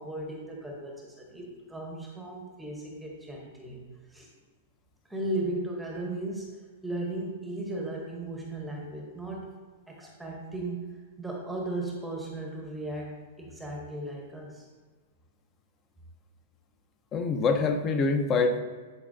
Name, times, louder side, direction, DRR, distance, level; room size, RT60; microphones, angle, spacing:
voice 1, 0.0-4.3 5.1-9.5 9.9-14.7, right 2 dB, 5° right, -1 dB, 0.9 m, -36 dB
voice 2, 17.1-18.6, left 4 dB, 25° left, 7 dB, 0.6 m, -25 dB
10.5 x 4.4 x 2.6 m, 1.5 s
supercardioid pair, 160°, 0 cm